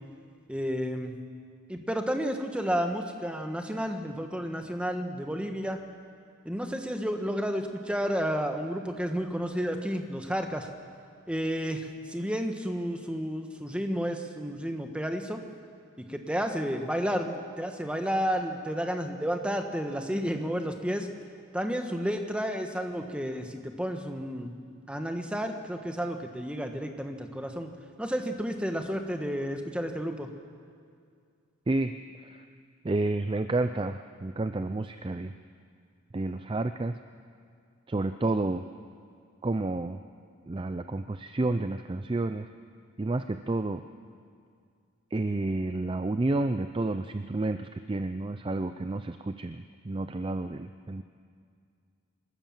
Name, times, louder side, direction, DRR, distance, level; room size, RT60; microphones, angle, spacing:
voice 1, 0.5-1.2 1.7-5.8 6.4-10.7 11.3-15.4 16.0-21.1 21.5-24.6 24.9-27.7 28.0-30.3, equal, 5° right, 5 dB, 1.3 m, -31 dB
voice 2, 32.8-35.3 36.1-37.0 37.9-38.7 39.4-40.0 40.5-42.5 43.0-43.8 45.1-51.0, right 2 dB, 20° right, 9 dB, 0.4 m, -30 dB
27.0 x 13.5 x 7.3 m, 2.3 s
head